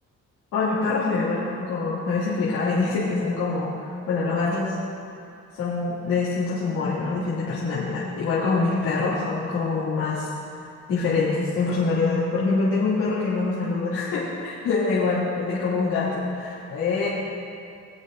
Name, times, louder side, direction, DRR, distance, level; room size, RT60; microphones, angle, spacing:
voice 1, 0.5-3.7 4.1-4.8 5.5-10.3 10.9-17.1, left 4 dB, 85° left, -11 dB, 2.6 m, -25 dB
22.0 x 8.4 x 2.6 m, 2.5 s
cardioid pair, 90°, 30 cm